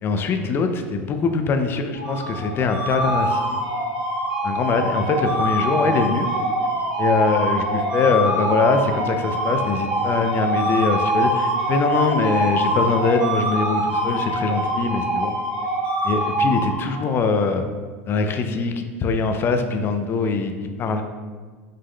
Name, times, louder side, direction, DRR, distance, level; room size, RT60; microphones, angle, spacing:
voice 1, 0.0-3.4 4.4-6.3 7.0-15.3 16.0-17.6 18.1-21.0, left 4 dB, 35° left, 6 dB, 0.4 m, -22 dB
sound 1, 1.9-17.2, right 1 dB, 60° right, 1.2 m, -24 dB
5.0 x 2.1 x 3.7 m, 1.5 s
supercardioid pair, 110°, 7 cm